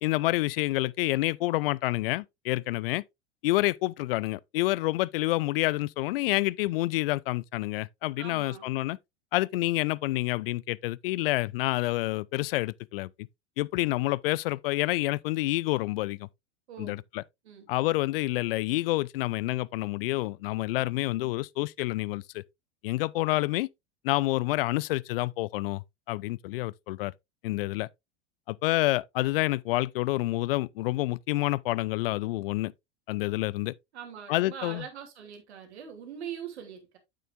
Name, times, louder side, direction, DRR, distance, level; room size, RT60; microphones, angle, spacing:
voice 1, 0.0-3.0 3.4-9.0 9.3-13.1 13.6-16.3 16.8-17.2 17.7-22.4 22.8-23.7 24.0-27.1 27.4-27.9 28.5-32.7 33.1-33.7 34.3-34.9, left 19 dB, 55° left, 0.5 m, -28 dB
voice 2, 8.2-8.7 16.7-17.0 17.4-17.7 33.9-37.0, right 8 dB, 70° right, 2.6 m, -42 dB
9.1 x 7.6 x 2.4 m
figure-of-eight pair, 85°, 34 cm